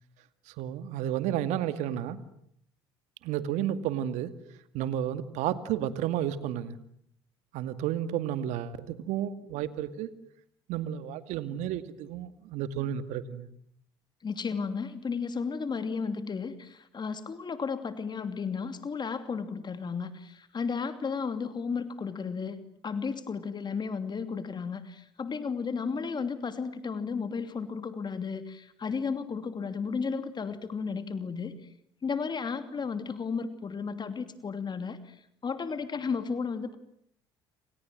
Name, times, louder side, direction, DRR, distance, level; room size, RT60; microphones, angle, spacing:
voice 1, 0.5-2.2 3.2-4.3 4.7-6.8 7.5-10.1 10.7-13.5, right 11 dB, 65° right, 12 dB, 2.2 m, -32 dB
voice 2, 14.2-31.7 32.0-36.7, left 5 dB, 35° left, 10 dB, 2.8 m, -34 dB
29.5 x 26.5 x 7.6 m, 0.70 s
hypercardioid pair, 65°, 13 cm